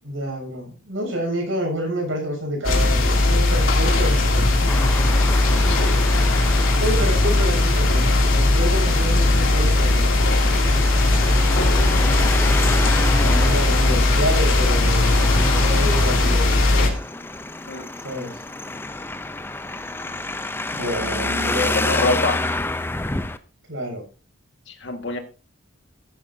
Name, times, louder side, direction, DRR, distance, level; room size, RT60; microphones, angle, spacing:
voice 1, 0.0-4.4 6.8-10.1 11.9-12.3 13.2-17.0 18.0-18.4 20.7-21.8 23.7-24.0, equal, 70° right, 1 dB, 7.0 m, -28 dB
sound 1, 2.6-16.9, left 2 dB, 80° left, 2.8 m, -18 dB
Traffic noise roadway noise, 4.7-23.4, left 2 dB, 10° left, 0.6 m, -29 dB
voice 2, 5.7-6.0 17.7-17.8 21.7-22.4 24.7-25.2, left 2 dB, 65° left, 5 dB, 1.8 m, -25 dB
15.0 x 11.0 x 2.7 m, 0.33 s
head